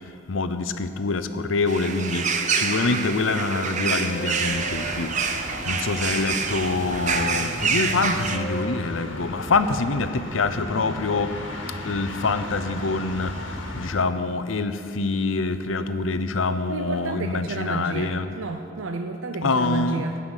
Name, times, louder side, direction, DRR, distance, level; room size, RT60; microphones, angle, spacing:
voice 1, 0.3-5.1 5.7-11.4 11.8-13.4 13.8-18.4 19.4-20.1, left 3 dB, 90° left, 11 dB, 0.7 m, -25 dB
sound 1, 1.7-8.4, right 5 dB, 40° right, 0.8 m, -27 dB
Wind instrument woodwind instrument, 2.7-10.1, right 2 dB, 35° left, 2.2 m, -39 dB
sound 2, 4.5-13.9, left 1 dB, 75° left, 1.7 m, -36 dB
voice 2, 16.7-20.2, right 3 dB, 85° right, 5 dB, 0.6 m, -31 dB
16.5 x 5.7 x 9.0 m, 2.6 s
head